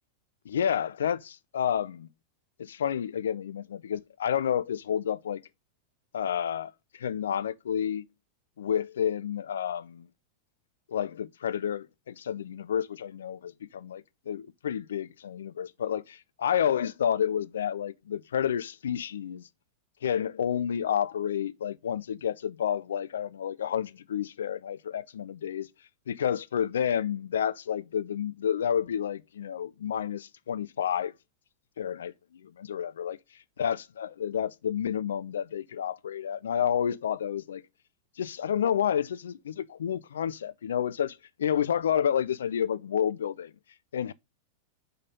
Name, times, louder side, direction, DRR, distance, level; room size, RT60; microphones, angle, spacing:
voice 1, 0.5-2.1 2.6-5.4 6.1-8.0 8.6-10.1 10.9-19.4 20.0-25.7 26.1-31.1 31.8-32.1 32.4-33.2 33.6-37.6 38.2-43.5 43.9-44.1, left 9 dB, 65° left, 0.4 m, -30 dB
5.3 x 4.0 x 5.2 m
figure-of-eight pair, 90°, 0 cm